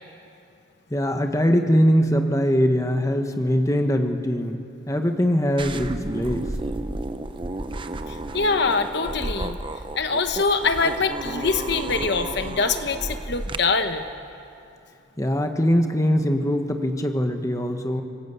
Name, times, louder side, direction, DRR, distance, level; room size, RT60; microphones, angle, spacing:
voice 1, 0.9-6.5 15.2-18.0, equal, 15° left, 5 dB, 1.3 m, -22 dB
sound 1, 5.6-13.6, right 2 dB, 25° right, 0.8 m, -32 dB
voice 2, 8.1-9.6 9.9-14.1, left 4 dB, 55° left, 8 dB, 1.0 m, -24 dB
27.0 x 19.5 x 8.2 m, 2.7 s
head